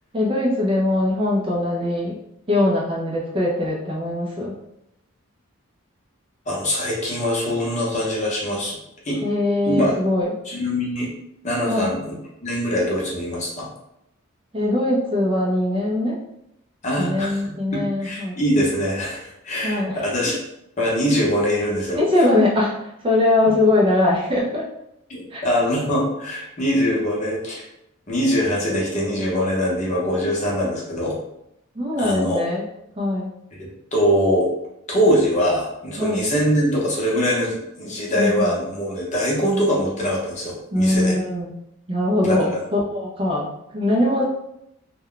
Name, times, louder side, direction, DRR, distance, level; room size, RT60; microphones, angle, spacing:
voice 1, 0.1-2.2 2.5-4.5 9.2-10.3 11.7-11.9 14.5-16.2 17.0-18.4 19.6-20.0 22.0-22.8 23.0-24.6 25.3-25.4 31.8-32.7 33.0-33.3 36.0-36.2 38.1-38.5 40.7-41.6 41.9-44.2, left 1 dB, 25° right, -3 dB, 0.4 m, -21 dB
voice 2, 6.5-8.8 9.0-9.2 9.6-9.9 10.5-11.1 11.4-12.1 12.4-13.7 16.8-17.4 17.7-20.4 20.8-22.0 25.1-27.7 28.1-31.2 32.0-32.4 33.6-34.5 34.9-41.2 42.2-42.6, equal, 35° left, -4 dB, 0.7 m, -23 dB
2.2 x 2.1 x 3.7 m, 0.80 s
head